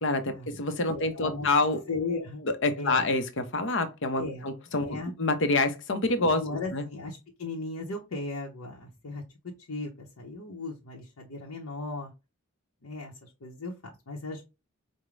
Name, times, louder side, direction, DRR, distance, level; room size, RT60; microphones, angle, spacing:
voice 1, 0.0-1.8 2.6-6.4 6.7-6.9, left 2 dB, 55° left, 0.7 m, -27 dB
voice 2, 0.9-1.5 1.9-2.4 2.8-3.1 4.2-4.5 4.8-5.1 6.2-12.1 12.8-13.7 14.1-14.4, left 3 dB, 85° left, 0.8 m, -36 dB
5.0 x 2.1 x 3.1 m
head